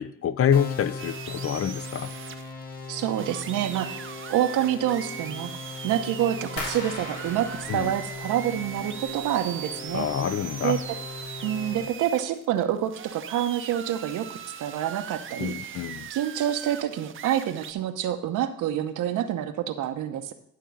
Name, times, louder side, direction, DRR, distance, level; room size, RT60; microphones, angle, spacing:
voice 1, 0.0-2.1 7.7-7.9 9.9-10.8 15.4-16.1, left 8 dB, 50° left, 0.6 m, -27 dB
sound 1, 0.5-11.9, left 3 dB, 30° left, 1.8 m, -39 dB
sound 2, 1.0-17.7, right 8 dB, 45° right, 0.7 m, -40 dB
voice 2, 2.9-5.5 5.8-10.1 10.6-10.8 11.4-14.3 14.6-15.8 16.1-20.3, right 11 dB, 85° right, 0.9 m, -27 dB
sound 3, 6.6-9.4 9.7-10.4 10.8-11.2 11.6-11.8, left 2 dB, 85° left, 2.7 m, -40 dB
11.5 x 3.8 x 7.0 m
cardioid pair, 90°, 30 cm